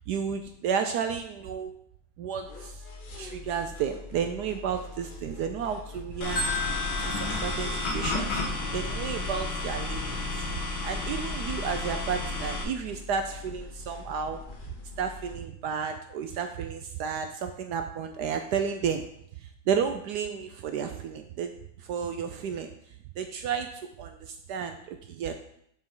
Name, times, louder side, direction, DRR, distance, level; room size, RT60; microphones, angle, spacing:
voice 1, 0.1-1.7 2.2-2.8 3.2-6.4 7.0-8.4 8.7-10.2 10.8-14.4 15.0-19.0 19.4-21.5 21.8-22.7 23.2-23.7 24.0-25.3, right 7 dB, 70° right, 6 dB, 1.0 m, -32 dB
sound 1, 2.4-15.4, left 3 dB, 35° left, 0.8 m, -44 dB
sound 2, 6.2-12.6, left 2 dB, 85° left, 2.1 m, -32 dB
Marimba xylophone, 6.4-8.4, left 4 dB, 55° left, 2.6 m, -35 dB
7.2 x 6.5 x 3.8 m, 0.70 s
omnidirectional pair, 2.2 m